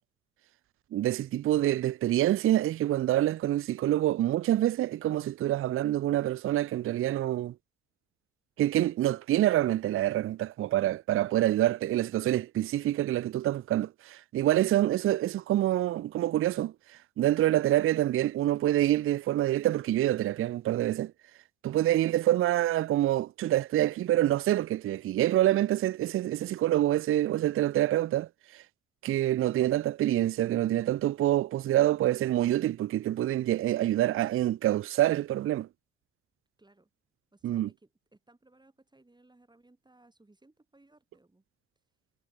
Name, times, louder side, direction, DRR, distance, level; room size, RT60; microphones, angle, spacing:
voice 1, 0.9-7.5 8.6-16.7 17.2-21.1 21.6-28.6 29.0-35.7 37.4-37.7, right 14 dB, 45° right, 0.4 m, -26 dB
voice 2, 36.6-36.9 37.3-41.4, right 2 dB, 15° right, 5.2 m, -62 dB
cardioid pair, 90°, 30 cm